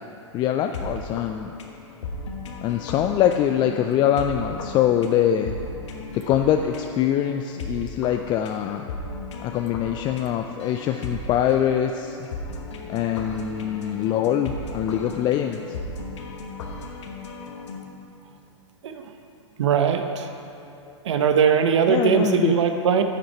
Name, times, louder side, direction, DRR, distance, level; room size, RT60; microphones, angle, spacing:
voice 1, 0.3-1.5 2.6-5.5 6.3-8.8 9.4-12.2 12.9-15.8 20.9-21.0 21.9-22.6, left 10 dB, 30° left, 6 dB, 0.4 m, -23 dB
sound 1, 0.6-17.8, left 2 dB, 65° left, 1.2 m, -36 dB
voice 2, 19.6-20.3 21.0-23.0, right 7 dB, 65° right, 7 dB, 0.9 m, -20 dB
10.5 x 7.7 x 4.5 m, 2.7 s
hypercardioid pair, 105°, 16 cm